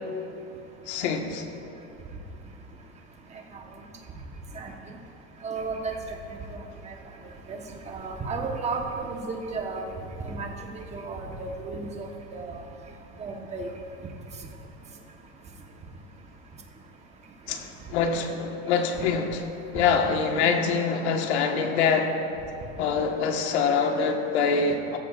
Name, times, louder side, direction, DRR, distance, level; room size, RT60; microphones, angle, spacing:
voice 1, 0.9-1.5 17.5-19.5 19.7-22.2 22.8-25.0, left 5 dB, 75° left, 3 dB, 1.5 m, -25 dB
voice 2, 5.4-6.0 6.5-6.6 6.9-7.0 7.5-7.6 7.9-9.8 10.2-10.5 10.9-12.6 13.2-13.7, right 4 dB, 20° right, 2 dB, 1.1 m, -33 dB
17.0 x 14.5 x 2.5 m, 2.8 s
supercardioid pair, 155°, 33 cm